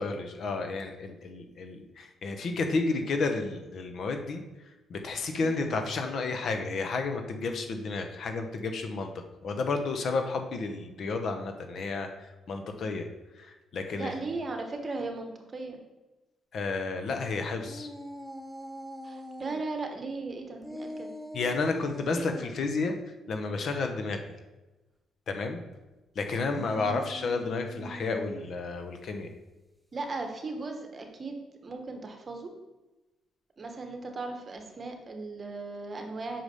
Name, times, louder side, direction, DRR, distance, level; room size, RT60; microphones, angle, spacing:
voice 1, 0.0-13.1 13.3-14.2 16.5-17.9 21.3-23.0 23.3-24.2 25.3-25.6 26.1-29.3, left 3 dB, 60° left, 6 dB, 0.9 m, -31 dB
voice 2, 13.9-15.8 19.0-21.1 29.9-31.3 31.6-32.5 33.6-36.4, right 3 dB, 35° right, 4 dB, 1.1 m, -37 dB
sound 1, 17.6-19.6 20.6-22.6 26.4-28.6, equal, ahead, 0.7 m, -42 dB
5.9 x 4.9 x 5.4 m, 1.1 s
cardioid pair, 90°, 0 cm